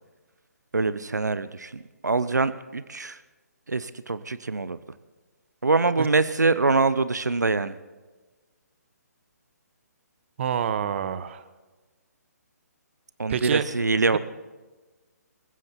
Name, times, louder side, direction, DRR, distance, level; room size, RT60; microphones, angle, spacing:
voice 1, 0.7-3.2 3.7-4.8 5.6-7.8 13.2-14.2, right 3 dB, 90° right, 15 dB, 0.7 m, -24 dB
voice 2, 10.4-11.4 13.3-13.7, right 8 dB, 45° right, 14 dB, 1.0 m, -27 dB
21.0 x 15.0 x 4.4 m, 1.2 s
figure-of-eight pair, 140°, 9 cm